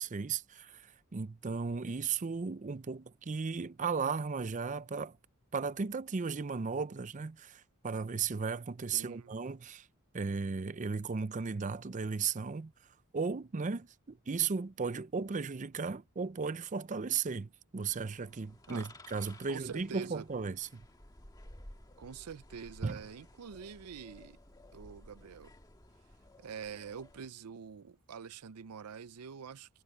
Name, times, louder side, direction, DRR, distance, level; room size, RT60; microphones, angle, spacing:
voice 1, 0.0-5.2 5.5-9.9 10.1-12.7 13.1-20.8 22.8-23.0, right 5 dB, 35° right, 0.5 m, -35 dB
voice 2, 8.9-9.3 18.7-18.9 19.5-20.2 22.0-24.4 24.7-25.5 26.4-29.8, right 6 dB, 90° right, 0.6 m, -45 dB
sound 1, 17.8-27.3, left 1 dB, 15° left, 1.7 m, -56 dB
head